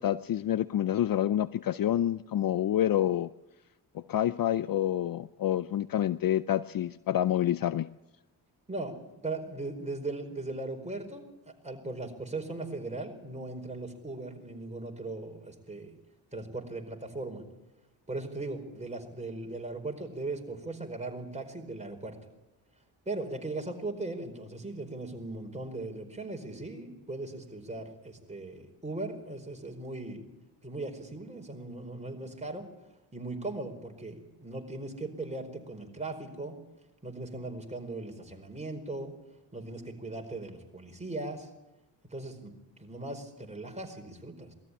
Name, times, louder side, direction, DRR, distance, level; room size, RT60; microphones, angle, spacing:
voice 1, 0.0-3.3 3.9-7.9, left 11 dB, 55° left, 16 dB, 0.6 m, -28 dB
voice 2, 8.7-11.2 11.6-15.9 16.3-17.4 18.1-22.2 23.1-30.2 30.6-32.7 33.1-36.6 37.0-39.1 39.5-41.5 42.1-42.5 42.8-44.5, right 2 dB, 15° right, 3 dB, 4.6 m, -38 dB
20.0 x 13.5 x 10.0 m, 1.0 s
cardioid pair, 70°, 43 cm